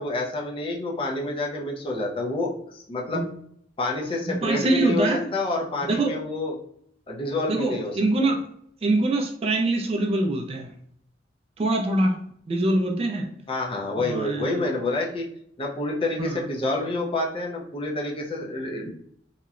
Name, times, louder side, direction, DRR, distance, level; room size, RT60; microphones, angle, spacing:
voice 1, 0.0-3.2 3.8-6.5 7.1-8.0 13.5-15.3 15.6-18.9, left 2 dB, 30° left, -1 dB, 0.5 m, -28 dB
voice 2, 4.3-5.3 5.9-6.1 7.5-8.4 8.8-10.7 11.6-12.2 12.5-13.3 14.0-14.6 16.2-16.4, right 2 dB, 30° right, 2 dB, 0.3 m, -24 dB
2.8 x 2.1 x 2.4 m, 0.68 s
head